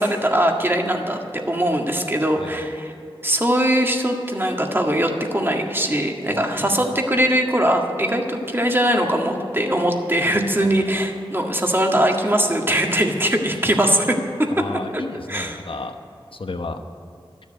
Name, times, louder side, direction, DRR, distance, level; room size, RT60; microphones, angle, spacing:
voice 1, 0.0-2.9 3.2-14.2 14.6-14.7 14.9-15.0 15.3-15.6, right 1 dB, 25° right, 2 dB, 1.8 m, -21 dB
voice 2, 14.6-15.9 16.3-16.8, left 3 dB, 65° left, 6 dB, 1.0 m, -32 dB
12.5 x 7.1 x 9.4 m, 2.6 s
wide cardioid pair, 40°, 10 cm